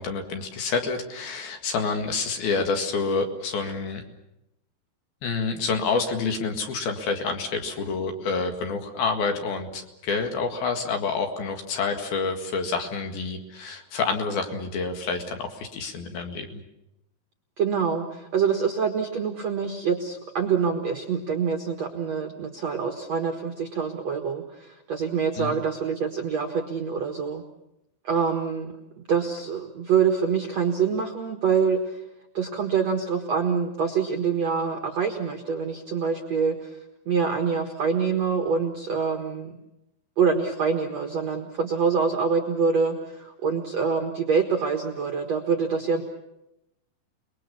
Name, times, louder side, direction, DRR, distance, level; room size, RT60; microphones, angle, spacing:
voice 1, 0.0-4.0 5.2-16.6 25.4-25.6, left 4 dB, 60° left, 5 dB, 3.4 m, -28 dB
voice 2, 17.6-27.4 28.0-28.7 29.1-32.0 32.3-36.8 37.1-39.6 40.2-46.0, right 6 dB, 60° right, 3 dB, 1.8 m, -25 dB
29.5 x 21.0 x 7.0 m, 0.87 s
omnidirectional pair, 5.4 m